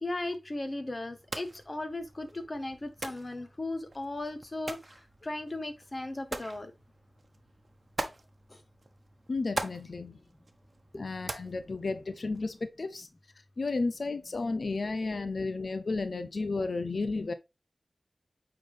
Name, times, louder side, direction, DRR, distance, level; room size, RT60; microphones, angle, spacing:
voice 1, 0.0-6.7 8.5-8.6 10.9-11.0, left 2 dB, 40° left, 1.3 m, -37 dB
sound 1, 1.1-12.6, right 2 dB, 50° right, 1.0 m, -43 dB
voice 2, 9.3-10.2 11.0-13.1 13.6-17.3, left 3 dB, 70° left, 0.6 m, -33 dB
8.7 x 3.9 x 3.4 m
cardioid pair, 50°, 0 cm